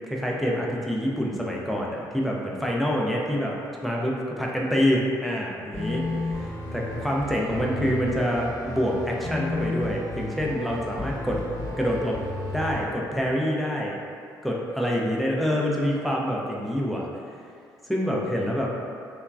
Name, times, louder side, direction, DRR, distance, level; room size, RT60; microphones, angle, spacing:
voice 1, 0.1-3.5 3.8-11.4 11.8-12.2 12.5-14.0 14.4-17.1 17.8-18.7, equal, ahead, -3 dB, 0.5 m, -26 dB
sound 1, 5.7-12.8, left 2 dB, 30° left, 1.0 m, -33 dB
2.9 x 2.3 x 2.3 m, 2.3 s
hypercardioid pair, 50°, 10 cm